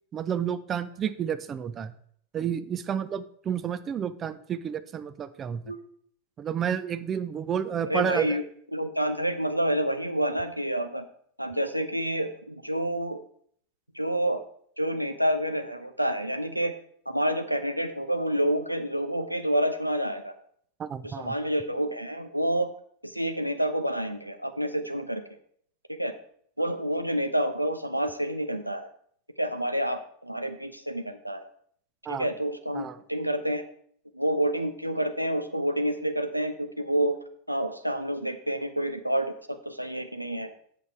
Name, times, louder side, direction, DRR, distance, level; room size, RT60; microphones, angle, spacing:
voice 1, 0.1-1.9 2.3-5.7 6.4-8.4 20.8-21.3 32.1-32.3 32.7-33.0, right 8 dB, 25° right, 13 dB, 0.5 m, -30 dB
voice 2, 7.9-8.4 8.7-11.0 11.4-13.2 13.9-14.4 14.8-16.7 17.1-20.3 21.0-22.7 23.0-25.2 26.0-26.1 26.6-28.9 29.4-31.5 32.1-33.6 34.1-37.2 37.5-39.3 39.6-40.5, right 1 dB, 90° right, 7 dB, 0.8 m, -28 dB
8.1 x 6.9 x 4.5 m, 0.63 s
figure-of-eight pair, 90°, 0 cm